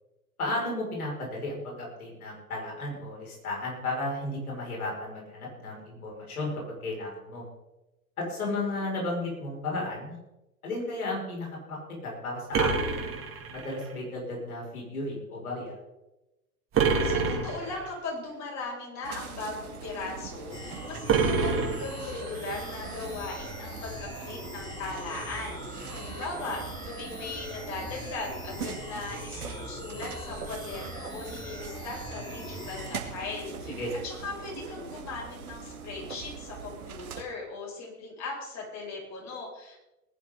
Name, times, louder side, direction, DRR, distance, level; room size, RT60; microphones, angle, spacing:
voice 1, 0.4-7.4 8.2-10.2 10.6-13.1 13.5-15.7 33.8-33.9, left 2 dB, 75° left, -2 dB, 6.1 m, -34 dB
voice 2, 8.4-8.7 17.0-39.8, left 3 dB, 35° left, -2 dB, 6.7 m, -38 dB
sound 1, 12.5-13.9 16.7-17.9 21.1-22.4, right 5 dB, 30° right, 2.9 m, -27 dB
sound 2, 19.0-37.2, right 6 dB, 75° right, 2.2 m, -42 dB
sound 3, 20.5-33.0, left 1 dB, 10° left, 3.3 m, -42 dB
19.5 x 11.0 x 4.0 m, 0.98 s
figure-of-eight pair, 90°, 44 cm